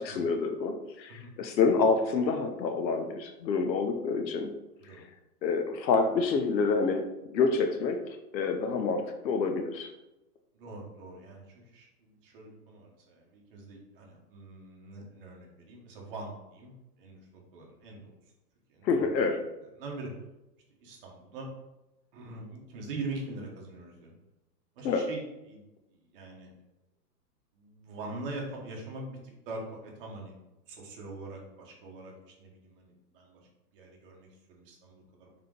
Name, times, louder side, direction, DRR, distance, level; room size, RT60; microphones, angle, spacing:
voice 1, 0.0-4.5 5.4-7.1 7.3-9.9 18.8-19.4 24.8-25.1, left 4 dB, 85° left, 5 dB, 0.8 m, -27 dB
voice 2, 10.5-16.7 17.0-18.1 18.7-19.3 19.7-20.1 20.8-21.5 22.1-24.1 24.8-26.5 27.5-30.3 30.7-32.1 32.4-33.4 33.7-35.3, right 2 dB, 35° right, -1 dB, 1.1 m, -43 dB
3.7 x 3.3 x 3.7 m, 0.96 s
hypercardioid pair, 155°, 50 cm